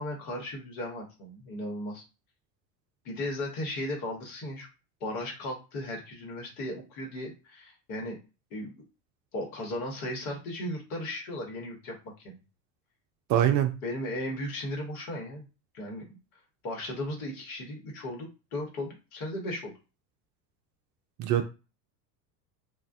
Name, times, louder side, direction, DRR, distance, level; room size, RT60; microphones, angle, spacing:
voice 1, 0.0-2.0 3.0-4.7 5.0-8.2 8.5-8.8 9.3-12.4 13.8-15.4 15.7-16.2 16.6-19.7, left 1 dB, 60° left, 1.3 m, -36 dB
voice 2, 13.3-13.8 21.2-21.5, right 10 dB, 40° right, 0.4 m, -24 dB
2.4 x 2.2 x 2.6 m
hypercardioid pair, 80°, 48 cm